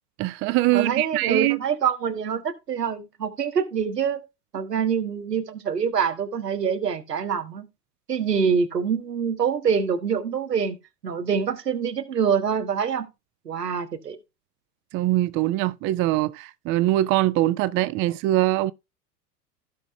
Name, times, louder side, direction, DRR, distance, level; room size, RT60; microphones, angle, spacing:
voice 1, 0.2-1.6 14.9-18.7, right 16 dB, 25° right, 0.5 m, -22 dB
voice 2, 0.7-4.2 4.5-7.7 8.1-10.8 11.0-13.1 13.4-14.2, right 7 dB, 85° right, 1.5 m, -25 dB
15.5 x 5.8 x 2.2 m
hypercardioid pair, 90°, 47 cm